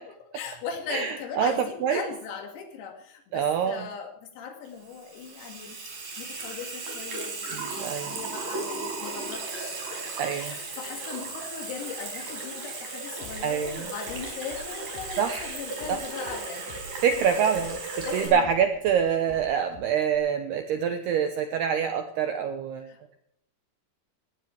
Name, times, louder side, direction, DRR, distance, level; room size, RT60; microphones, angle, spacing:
voice 1, 0.3-10.0 10.3-16.8 18.0-18.5 22.8-23.0, left 6 dB, 85° left, 3 dB, 5.1 m, -39 dB
voice 2, 0.9-2.0 3.3-3.9 7.5-8.2 10.2-10.6 13.4-13.9 15.2-15.6 15.9-16.0 17.0-23.1, right 7 dB, 80° right, 7 dB, 2.3 m, -26 dB
Water tap faucet / Sink (filling or washing), 4.6-18.3, right 3 dB, 45° right, 6.3 m, -36 dB
sound 1, 13.2-20.2, left 3 dB, 60° left, 3.9 m, -46 dB
18.5 x 17.5 x 3.4 m, 0.74 s
omnidirectional pair, 6.0 m